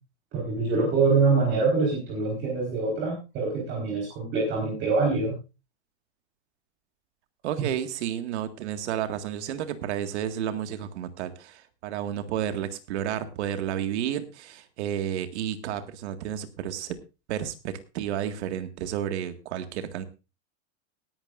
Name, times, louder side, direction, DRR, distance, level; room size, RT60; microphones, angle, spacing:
voice 1, 0.3-5.3, right 4 dB, 35° right, -1 dB, 4.4 m, -25 dB
voice 2, 7.4-17.0 17.3-20.0, right 10 dB, 70° right, 8 dB, 1.9 m, -31 dB
18.5 x 11.5 x 2.5 m, 0.28 s
supercardioid pair, 165°, 35 cm